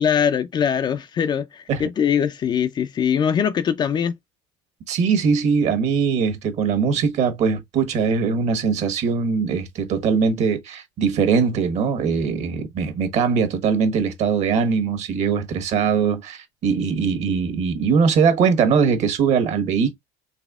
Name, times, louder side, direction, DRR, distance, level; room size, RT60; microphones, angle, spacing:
voice 1, 0.0-4.1, left 8 dB, 30° left, 0.4 m, -22 dB
voice 2, 4.9-19.9, right 6 dB, 50° right, 1.3 m, -21 dB
4.0 x 3.4 x 2.4 m
cardioid pair, 135°, 15 cm